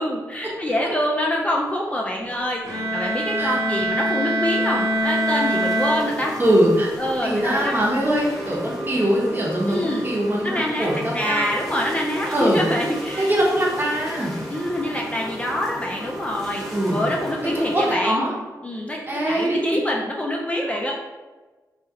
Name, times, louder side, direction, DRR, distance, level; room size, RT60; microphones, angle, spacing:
voice 1, 0.0-6.3 7.0-7.8 9.7-10.1 10.4-10.9 11.1-13.3 14.5-16.6 16.9-18.2 18.6-19.0 19.3-20.9, left 1 dB, 20° left, -2 dB, 0.4 m, -25 dB
Bowed string instrument, 2.6-6.7, right 1 dB, 60° right, 1.2 m, -24 dB
sound 1, 4.2-17.9, equal, ahead, 1.0 m, -35 dB
voice 2, 6.4-6.9 7.2-11.5 12.3-12.6 13.1-14.3 16.7-17.1 17.4-18.3 19.1-19.6, right 1 dB, 30° right, -4 dB, 0.9 m, -22 dB
2.7 x 2.4 x 2.8 m, 1.3 s
cardioid pair, 60°, 7 cm